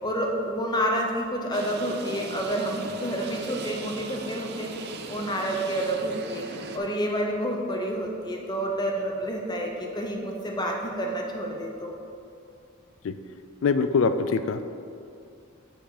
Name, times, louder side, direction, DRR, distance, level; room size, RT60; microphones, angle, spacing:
voice 1, 0.0-4.7 5.1-6.4 6.7-11.9, right 1 dB, 20° left, 1 dB, 0.8 m, -29 dB
sound 1, 1.5-6.8, right 3 dB, 50° right, 0.6 m, -38 dB
voice 2, 13.6-14.6, left 4 dB, 65° left, 10 dB, 0.4 m, -23 dB
7.7 x 6.2 x 4.1 m, 2.5 s
head